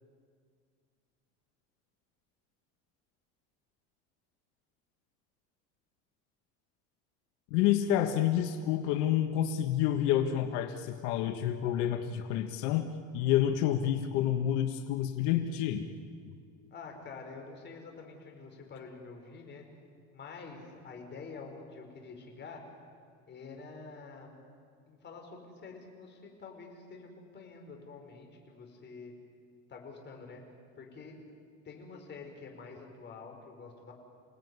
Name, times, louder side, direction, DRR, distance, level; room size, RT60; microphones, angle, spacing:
voice 1, 7.5-15.9, left 11 dB, 80° left, 7 dB, 1.5 m, -29 dB
voice 2, 16.7-19.6 20.1-22.6 23.3-24.4 24.9-29.1 29.7-30.4 30.8-31.2 31.6-33.9, left 4 dB, 30° left, 2 dB, 5.0 m, -47 dB
28.0 x 18.5 x 9.6 m, 2.2 s
cardioid pair, 150°, 35 cm